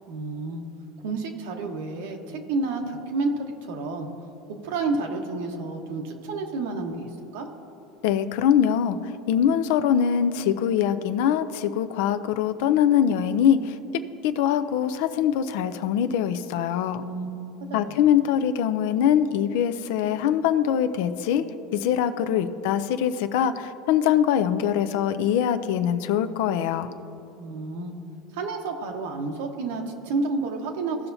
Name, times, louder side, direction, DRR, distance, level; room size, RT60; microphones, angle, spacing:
voice 1, 0.1-0.6 1.0-4.1 4.6-7.5 17.0-18.0 27.4-27.9 28.3-31.0, right 3 dB, 80° right, 3 dB, 1.2 m, -30 dB
voice 2, 8.0-9.0 9.3-13.7 14.2-17.0 17.7-21.4 21.7-26.9, left 9 dB, 70° left, 11 dB, 0.5 m, -23 dB
16.5 x 5.7 x 2.7 m, 3.0 s
supercardioid pair, 140°, 0 cm